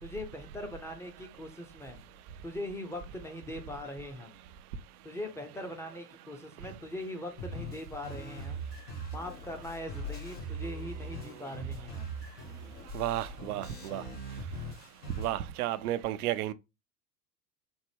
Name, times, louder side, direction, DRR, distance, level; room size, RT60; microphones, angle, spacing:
voice 1, 0.0-2.0 2.4-4.4 5.0-8.6 9.1-12.1, left 1 dB, 5° left, 0.6 m, -41 dB
sound 1, 7.4-15.4, right 1 dB, 80° left, 1.8 m, -41 dB
voice 2, 12.9-14.0 15.2-16.5, right 13 dB, 65° right, 0.5 m, -32 dB
4.2 x 2.1 x 3.3 m
hypercardioid pair, 90°, 48 cm